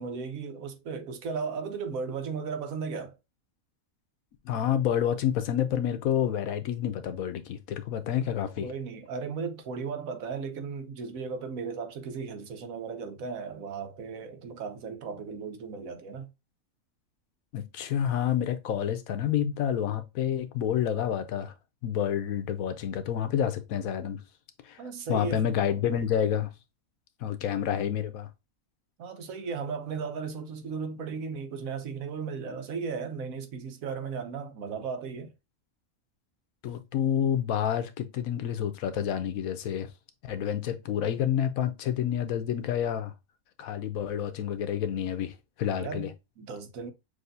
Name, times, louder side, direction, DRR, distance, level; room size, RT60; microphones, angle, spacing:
voice 1, 0.0-3.2 8.6-16.3 24.8-25.4 29.0-35.3 45.8-46.9, right 5 dB, 85° right, 1.2 m, -36 dB
voice 2, 4.4-8.7 17.5-21.5 21.8-24.2 24.6-24.8 25.1-26.5 27.2-28.3 36.6-39.9 40.3-43.1 43.6-46.1, left 9 dB, 85° left, 1.1 m, -29 dB
6.3 x 2.7 x 2.6 m
omnidirectional pair, 1.4 m